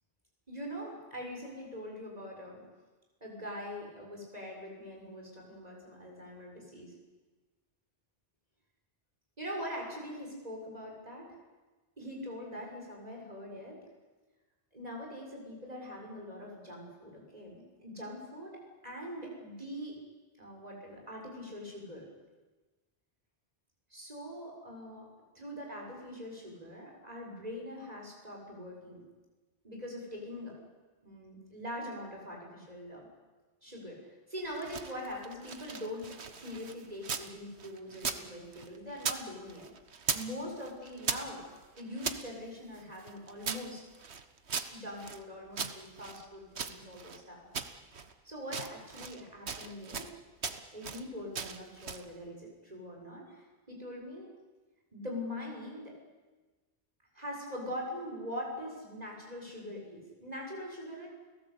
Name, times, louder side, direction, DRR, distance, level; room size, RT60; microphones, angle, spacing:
voice 1, 0.5-2.6 3.2-6.9 9.4-11.4 12.0-13.8 14.7-20.0 20.4-22.1 23.9-25.1 25.4-29.0 29.6-30.5 31.0-33.1 33.6-39.7 40.1-41.4 41.8-43.8 44.7-47.5 48.2-50.1 50.7-54.3 54.9-55.9 57.1-61.1, equal, 40° right, 0 dB, 7.1 m, -43 dB
sound 1, 34.4-37.3 37.6-39.2 39.5-40.3 40.6-42.2 42.7-45.2 45.5-47.2 47.5-48.1 48.4-49.2 49.5-50.1 50.4-51.0 51.3-52.1, right 5 dB, 90° right, 1.6 m, -38 dB
30.0 x 17.5 x 8.7 m, 1.3 s
omnidirectional pair, 1.1 m